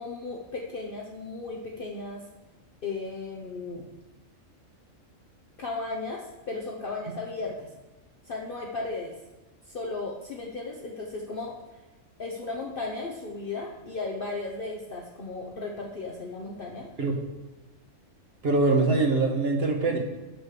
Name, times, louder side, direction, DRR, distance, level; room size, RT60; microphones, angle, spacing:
voice 1, 0.0-2.2 2.8-3.9 5.6-7.7 8.2-9.1 9.7-11.5 12.2-16.9, left 3 dB, 45° left, -2 dB, 1.1 m, -35 dB
voice 2, 18.4-20.0, right 3 dB, 50° right, 2 dB, 1.5 m, -23 dB
6.4 x 6.3 x 6.6 m, 1.1 s
omnidirectional pair, 1.4 m